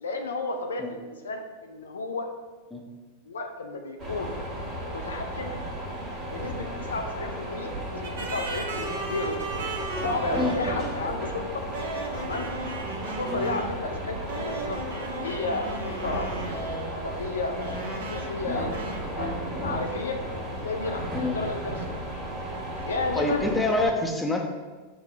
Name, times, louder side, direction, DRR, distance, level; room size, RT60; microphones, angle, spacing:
voice 1, 0.0-2.3 3.3-4.4 4.9-5.5 6.3-9.4 10.0-11.6 12.2-12.5 13.0-16.3 16.8-19.3 19.6-20.2 20.5-22.1 22.8-23.5, left 3 dB, 70° left, 5 dB, 0.4 m, -33 dB
sound 1, 4.0-23.9, equal, 30° right, 1.0 m, -34 dB
sound 2, 8.0-11.0 11.7-13.8 14.3-17.1 17.6-18.4 18.7-19.0, right 3 dB, 60° right, 0.5 m, -35 dB
voice 2, 23.1-24.4, left 2 dB, 5° left, 1 dB, 0.5 m, -27 dB
5.8 x 2.0 x 3.7 m, 1.3 s
figure-of-eight pair, 90°, 0 cm